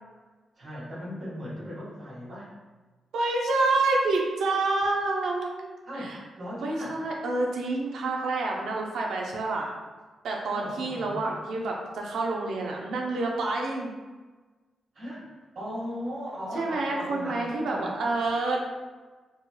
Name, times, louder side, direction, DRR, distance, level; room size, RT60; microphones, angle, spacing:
voice 1, 0.6-2.5 5.9-6.9 10.5-11.2 14.9-15.3 15.5-17.9, equal, 60° right, -9 dB, 1.5 m, -37 dB
voice 2, 3.1-5.7 5.9-6.2 6.6-9.7 10.2-13.9 16.5-18.6, right 2 dB, 85° right, -1 dB, 0.6 m, -28 dB
4.3 x 3.1 x 2.2 m, 1.3 s
wide cardioid pair, 130°, 0 cm